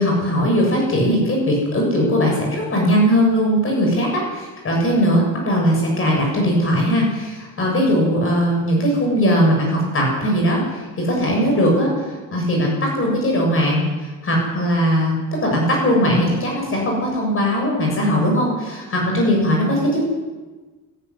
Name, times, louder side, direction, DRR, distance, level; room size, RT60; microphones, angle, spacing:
voice 1, 0.0-15.1 15.4-20.1, equal, 40° left, -1 dB, 7.3 m, -19 dB
20.0 x 15.0 x 9.8 m, 1.3 s
wide cardioid pair, 175°, 33 cm